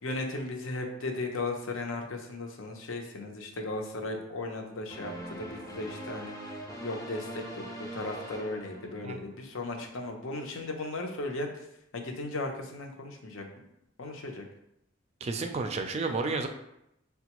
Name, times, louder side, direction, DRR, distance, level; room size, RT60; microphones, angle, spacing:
voice 1, 0.0-6.3 6.8-11.7 11.9-13.4 14.0-14.4, left 2 dB, 75° left, 2 dB, 0.7 m, -36 dB
sound 1, 4.9-9.4, right 1 dB, 15° left, 0.6 m, -42 dB
voice 2, 15.2-16.5, right 3 dB, 30° right, 5 dB, 0.3 m, -31 dB
5.9 x 2.3 x 2.9 m, 0.82 s
head